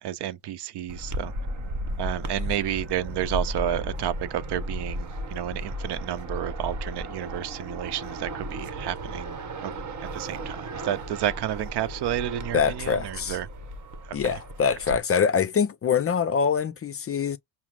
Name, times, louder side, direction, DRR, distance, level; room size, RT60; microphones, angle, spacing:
voice 1, 0.0-1.3 2.0-9.7 10.0-13.5, right 11 dB, 60° right, 0.7 m, -31 dB
sound 1, 0.9-15.0, right 1 dB, 40° right, 1.0 m, -35 dB
voice 2, 12.5-13.4 14.1-17.4, left 6 dB, 30° left, 0.5 m, -24 dB
5.6 x 2.0 x 2.4 m
supercardioid pair, 70°, 46 cm